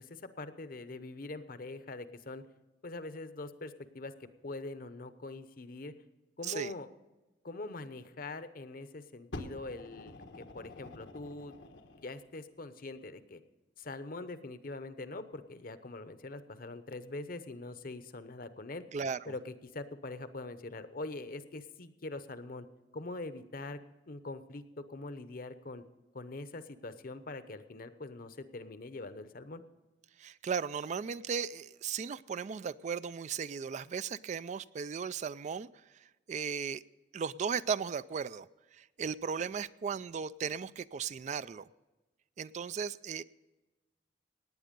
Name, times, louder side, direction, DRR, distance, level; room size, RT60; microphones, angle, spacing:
voice 1, 0.0-2.4 2.8-4.1 4.4-5.9 6.4-6.9 7.4-11.5 11.9-13.4 13.8-18.8 19.3-22.7 22.9-23.8 24.1-25.8 26.1-29.6, left 2 dB, 50° left, 12 dB, 0.8 m, -43 dB
Fire, 9.3-12.1 13.0-13.1, left 2 dB, 90° left, 1.4 m, -47 dB
voice 2, 18.9-19.3 30.2-35.7 35.9-36.8 37.1-41.7 42.4-43.2, right 6 dB, 40° right, 16 dB, 0.3 m, -36 dB
18.0 x 9.2 x 5.2 m, 1.1 s
head